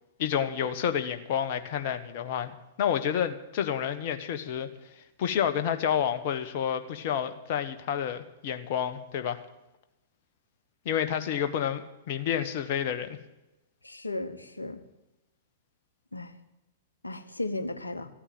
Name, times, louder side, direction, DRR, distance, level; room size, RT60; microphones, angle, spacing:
voice 1, 0.2-4.7 5.0-9.4 10.8-13.2, left 9 dB, 50° left, 9 dB, 1.3 m, -29 dB
voice 2, 13.8-14.8 16.1-16.3 17.0-18.1, left 2 dB, 85° left, 9 dB, 1.1 m, -35 dB
14.5 x 8.9 x 9.0 m, 0.96 s
figure-of-eight pair, 105°, 0 cm